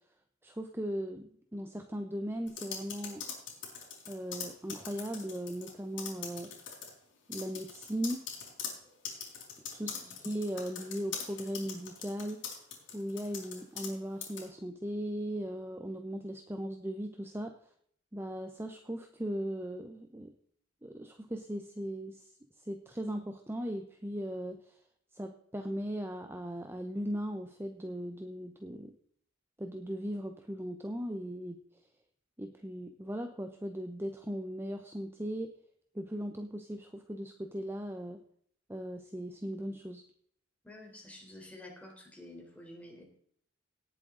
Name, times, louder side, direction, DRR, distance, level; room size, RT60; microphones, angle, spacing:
voice 1, 0.4-3.3 4.1-6.5 7.3-8.2 9.7-12.4 12.9-17.6 18.1-20.3 20.8-22.3 22.6-24.8 25.1-28.9 29.6-31.6 32.4-35.5 35.9-38.2 38.7-40.0, equal, 10° right, 6 dB, 0.8 m, -38 dB
sound 1, 2.5-5.7 6.0-6.9 7.3-13.9 14.2-14.4, left 7 dB, 75° left, 4.2 m, -41 dB
voice 2, 40.6-43.0, left 1 dB, 10° left, -1 dB, 3.9 m, -50 dB
18.0 x 7.7 x 3.8 m, 0.63 s
head